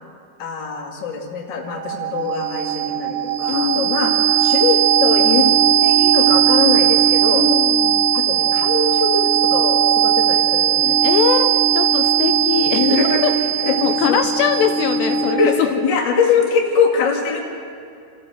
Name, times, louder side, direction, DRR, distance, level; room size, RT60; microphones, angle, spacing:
voice 1, 0.4-5.5 5.8-7.5 8.1-11.0 12.8-13.2 13.6-13.7 14.1-14.2 15.3-17.4, left 5 dB, 40° left, 1 dB, 1.8 m, -22 dB
sound 1, 1.7-15.6, right 9 dB, 80° right, 2.5 m, -18 dB
voice 2, 3.5-4.1 7.3-8.1 10.9-13.0 13.2-13.3 13.8-15.7, left 9 dB, 80° left, 7 dB, 2.8 m, -22 dB
29.0 x 14.0 x 7.7 m, 2.4 s
omnidirectional pair, 5.3 m